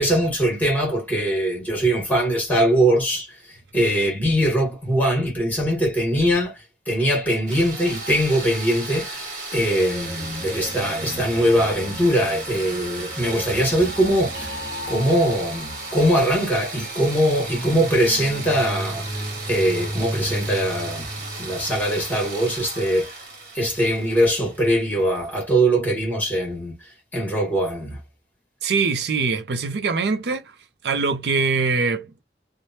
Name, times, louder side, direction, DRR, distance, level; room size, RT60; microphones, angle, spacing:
voice 1, 0.0-9.2 9.5-14.6 14.9-21.1 21.4-23.2 23.5-28.0, right 1 dB, 10° left, 1.3 m, -22 dB
sound 1, 7.5-25.2, right 3 dB, 45° right, 1.3 m, -35 dB
sound 2, 9.7-22.6, equal, 10° right, 1.3 m, -36 dB
voice 2, 28.6-30.4 30.8-32.2, right 4 dB, 70° right, 0.4 m, -23 dB
3.1 x 2.1 x 2.7 m
head